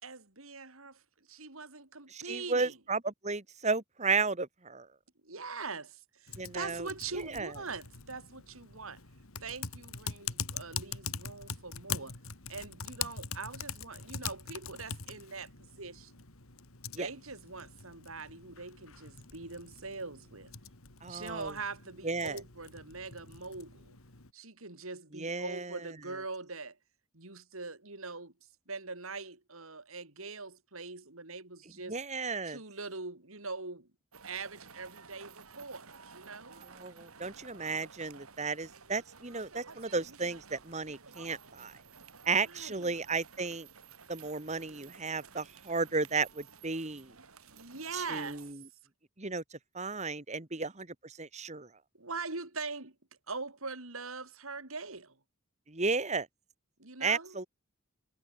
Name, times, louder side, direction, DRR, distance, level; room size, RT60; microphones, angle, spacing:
voice 1, 0.0-1.0 1.3-2.8 5.2-9.0 9.4-12.2 12.5-16.1 17.0-20.5 21.1-24.0 24.3-26.8 27.1-28.3 28.7-32.0 32.5-33.9 34.2-36.6 42.4-42.9 47.6-48.5 52.0-52.9 53.3-55.1 56.8-57.4, right 4 dB, 75° right, 4.0 m, -42 dB
voice 2, 2.1-4.9 6.4-6.9 7.1-7.5 17.0-17.1 21.0-21.5 22.0-22.4 25.1-25.9 31.9-32.6 36.6-41.7 42.3-43.7 44.1-47.1 47.9-48.6 49.2-49.4 49.7-51.7 55.7-56.3 57.0-57.5, right 4 dB, 30° right, 1.9 m, -34 dB
Typing, 6.3-24.3, left 7 dB, 75° left, 3.0 m, -43 dB
sound 1, 34.1-48.5, right 5 dB, 90° right, 3.1 m, -54 dB
head